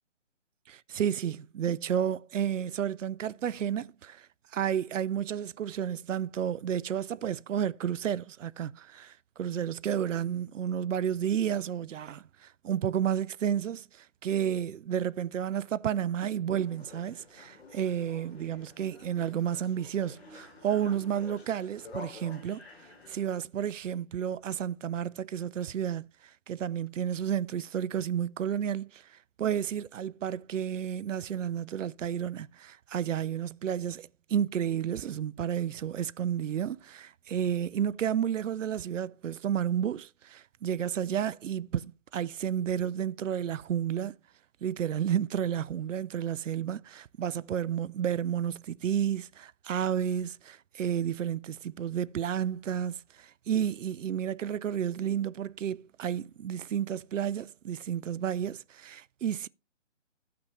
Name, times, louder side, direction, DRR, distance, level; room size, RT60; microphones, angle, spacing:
voice 1, 0.7-22.6 23.1-44.2 44.6-59.5, right 9 dB, 85° right, 0.5 m, -31 dB
sound 1, 16.6-23.3, left 3 dB, 55° left, 2.7 m, -49 dB
14.0 x 5.9 x 3.1 m
hypercardioid pair, 160°, 37 cm